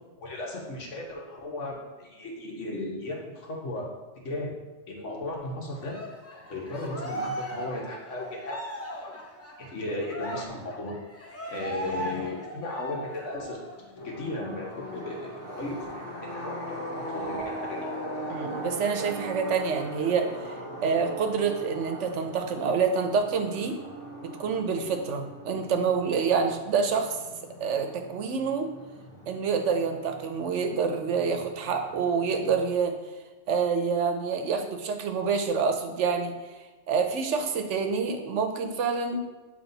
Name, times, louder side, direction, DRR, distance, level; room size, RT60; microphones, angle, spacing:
voice 1, 0.2-3.8 4.2-4.5 4.9-5.9 6.5-8.6 9.0-9.1 9.6-10.9 11.5-13.9 14.2-15.2 15.5-15.9 16.3-16.8 17.1-17.8, left 2 dB, 85° left, -2 dB, 1.6 m, -35 dB
Cheering, 5.8-13.8 14.2-14.3 14.7-15.7, right 1 dB, 15° left, 0.6 m, -38 dB
sound 1, 14.0-32.7, right 1 dB, 50° left, 1.1 m, -40 dB
voice 2, 18.3-20.5 20.8-23.8 24.2-27.2 27.6-28.7 29.3-32.9 33.5-36.3 36.9-39.2, right 5 dB, 80° right, 5 dB, 1.0 m, -27 dB
8.0 x 3.3 x 4.0 m, 1.2 s
omnidirectional pair, 1.2 m